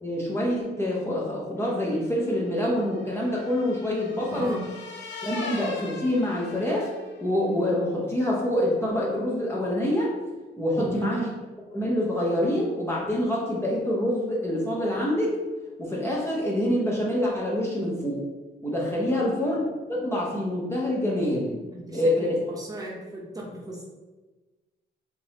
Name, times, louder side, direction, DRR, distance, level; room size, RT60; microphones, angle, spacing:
voice 1, 0.0-4.6 5.2-6.9 7.2-10.1 10.6-11.3 11.7-15.3 15.8-18.2 18.6-19.6 19.9-21.6 21.9-22.4, left 1 dB, 10° left, -5 dB, 0.8 m, -26 dB
sound 1, 1.9-7.3, left 3 dB, 65° left, 0.7 m, -40 dB
voice 2, 4.3-4.6 10.8-11.3 19.1-19.5 21.9-23.8, right 2 dB, 20° right, -4 dB, 0.9 m, -36 dB
3.7 x 2.8 x 3.0 m, 1.2 s
cardioid pair, 90°, 20 cm